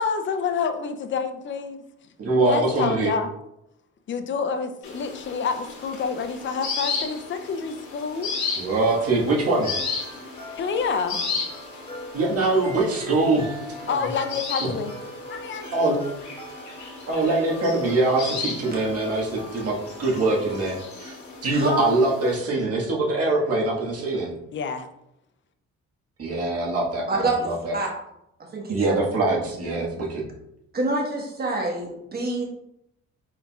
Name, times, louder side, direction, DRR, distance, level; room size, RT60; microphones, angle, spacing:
voice 1, 0.0-1.8 2.4-3.3 4.1-8.3 10.5-11.2 13.9-14.9 15.3-16.0 24.5-24.9, left 5 dB, 40° left, 8 dB, 0.5 m, -28 dB
voice 2, 2.2-3.1 8.5-9.7 12.1-13.5 14.6-14.7 15.7-16.0 17.1-24.3 26.2-27.8 28.7-30.2, right 2 dB, 50° right, -3 dB, 1.6 m, -23 dB
sound 1, 4.8-22.4, left 4 dB, 70° left, 1.7 m, -35 dB
sound 2, 8.9-20.9, equal, 15° left, 1.3 m, -42 dB
voice 3, 21.5-21.8 27.1-27.3 27.7-27.9 28.5-28.8 30.7-32.4, right 2 dB, 30° right, -1 dB, 1.3 m, -26 dB
4.9 x 4.4 x 2.4 m, 0.82 s
cardioid pair, 90°, 30 cm